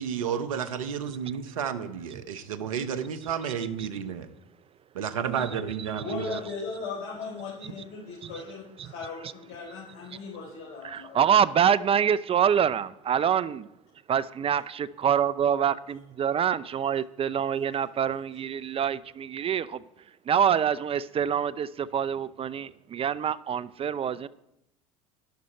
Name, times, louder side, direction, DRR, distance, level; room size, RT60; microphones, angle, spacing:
voice 1, 0.0-4.3 4.9-6.4, right 7 dB, 90° right, 12 dB, 0.9 m, -31 dB
voice 2, 6.0-11.2, left 4 dB, 65° left, -2 dB, 3.9 m, -38 dB
voice 3, 10.8-13.7 14.1-19.8 20.3-24.3, right 8 dB, 35° right, 18 dB, 0.5 m, -26 dB
12.5 x 12.0 x 4.4 m, 0.83 s
hypercardioid pair, 85°, 17 cm